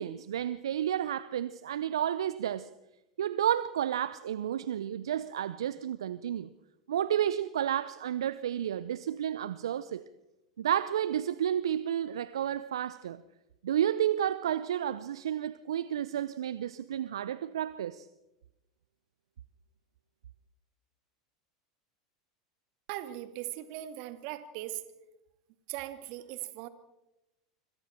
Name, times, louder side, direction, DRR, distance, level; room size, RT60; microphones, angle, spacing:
voice 1, 0.0-2.7 3.2-6.5 6.9-10.0 10.6-13.2 13.6-18.1, right 10 dB, 75° right, 0.7 m, -31 dB
voice 2, 22.9-24.8 25.7-26.7, right 14 dB, 55° right, 2.3 m, -39 dB
26.5 x 25.5 x 4.5 m
figure-of-eight pair, 85°, 3 cm